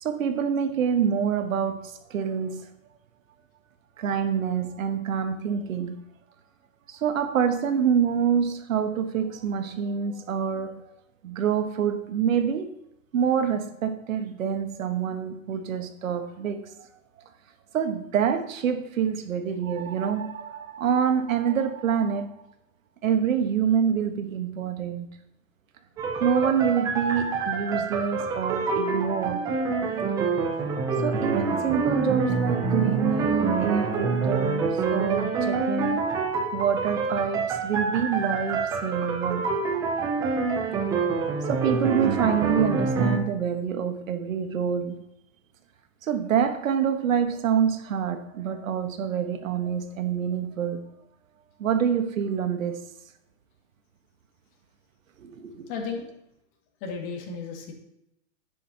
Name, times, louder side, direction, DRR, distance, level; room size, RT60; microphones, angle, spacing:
voice 1, 0.0-2.6 4.0-6.0 6.9-10.8 11.2-12.7 13.1-16.6 17.7-22.3 23.0-25.1 26.2-29.4 31.0-36.0 36.5-39.5 41.5-45.0 46.0-50.8 51.6-52.8 55.2-55.7, right 7 dB, 75° right, 8 dB, 1.3 m, -26 dB
sound 1, 26.0-43.2, right 4 dB, 10° right, 0.5 m, -26 dB
voice 2, 55.7-56.1 56.8-57.7, left 5 dB, 35° left, 1 dB, 2.2 m, -33 dB
10.5 x 9.9 x 2.9 m, 0.82 s
hypercardioid pair, 150°, 40 cm